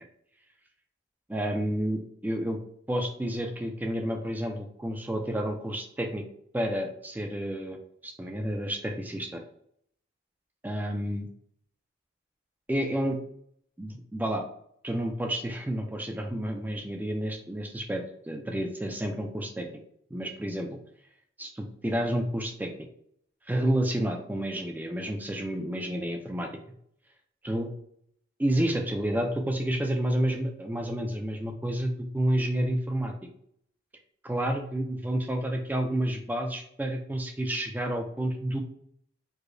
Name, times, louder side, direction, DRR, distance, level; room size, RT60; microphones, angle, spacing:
voice 1, 1.3-2.6 2.9-6.2 6.5-7.8 8.0-9.4 10.6-11.2 12.7-13.2 13.8-14.5 14.8-19.7 20.1-20.8 21.4-22.7 23.5-26.5 27.4-27.7 28.4-33.1 34.2-38.6, right 1 dB, 10° right, 3 dB, 0.3 m, -30 dB
4.7 x 2.0 x 2.5 m, 0.68 s
head